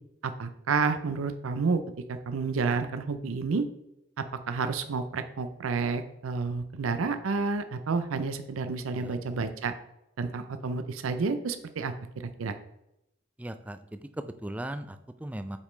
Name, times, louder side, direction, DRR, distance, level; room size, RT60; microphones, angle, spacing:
voice 1, 0.2-1.8 2.1-3.6 4.2-9.7 10.2-12.5, right 4 dB, 85° right, 9 dB, 0.5 m, -30 dB
voice 2, 13.4-15.6, right 1 dB, 5° right, 9 dB, 0.3 m, -38 dB
8.3 x 5.1 x 3.2 m, 0.85 s
head